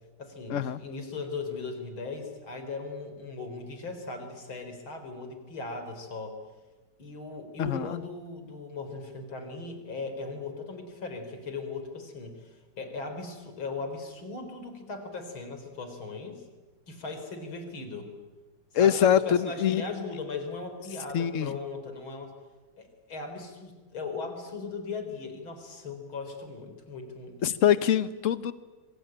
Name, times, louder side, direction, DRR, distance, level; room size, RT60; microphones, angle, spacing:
voice 1, 0.2-6.4 7.0-16.4 16.9-18.1 18.7-22.3 22.8-27.4, left 3 dB, 90° left, 7 dB, 4.7 m, -38 dB
voice 2, 7.6-8.0 18.7-20.0 21.1-21.5 27.4-28.5, left 9 dB, 45° left, 13 dB, 1.2 m, -24 dB
27.0 x 24.0 x 8.9 m, 1.2 s
omnidirectional pair, 2.2 m